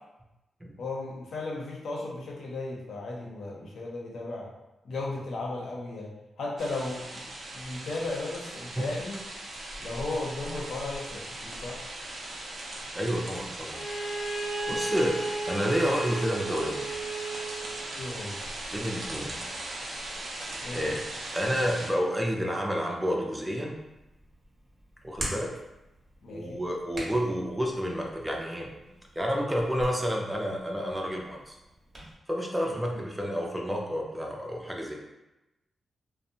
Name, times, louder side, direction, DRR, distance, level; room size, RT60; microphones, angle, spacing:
voice 1, 0.8-4.5 4.8-6.1 6.4-7.2 7.5-9.2 9.8-11.8 18.0-18.4 20.6-20.9 26.2-26.6 32.7-33.0, left 2 dB, 75° left, -2 dB, 0.6 m, -35 dB
sound 1, 6.6-21.9, right 1 dB, 70° right, 0.5 m, -39 dB
voice 2, 12.9-13.8 14.7-15.2 15.5-16.9 18.7-19.4 20.7-20.9 21.3-23.7 25.0-25.5 26.3-28.7 29.2-31.6 32.3-34.9, equal, 10° right, 0 dB, 0.5 m, -29 dB
Bowed string instrument, 13.7-17.9, right 3 dB, 40° left, 0.9 m, -34 dB
Hands, 23.7-32.1, right 1 dB, 35° right, 0.8 m, -44 dB
2.5 x 2.0 x 2.7 m, 0.99 s
cardioid pair, 75°, 0 cm